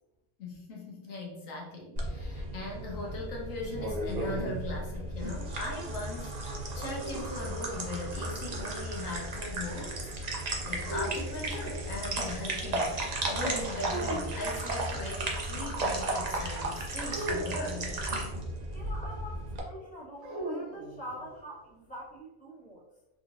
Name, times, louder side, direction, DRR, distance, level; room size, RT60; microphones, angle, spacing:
voice 1, 0.4-18.0, left 2 dB, 85° left, -1 dB, 1.2 m, -39 dB
sound 1, 2.0-19.6, right 2 dB, 45° right, 0.5 m, -34 dB
sound 2, 6.6-8.3 10.8-12.1 13.9-14.7 17.1-18.2 20.2-21.4, right 1 dB, 65° right, 1.2 m, -40 dB
voice 2, 18.7-22.8, equal, 5° left, -8 dB, 1.3 m, -45 dB
3.8 x 3.0 x 2.5 m, 1.0 s
omnidirectional pair, 1.3 m